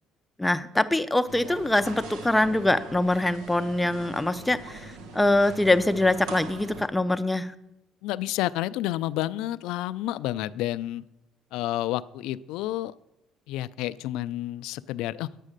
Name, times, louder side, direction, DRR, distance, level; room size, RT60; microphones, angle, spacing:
voice 1, 0.4-7.5, left 1 dB, 5° left, 11 dB, 0.5 m, -24 dB
sound 1, 1.3-6.9, right 3 dB, 90° right, 1.1 m, -41 dB
voice 2, 8.0-11.0 11.5-12.9 13.5-15.3, left 14 dB, 80° left, 15 dB, 0.4 m, -30 dB
9.9 x 8.4 x 6.6 m, 0.90 s
cardioid pair, 125°, 0 cm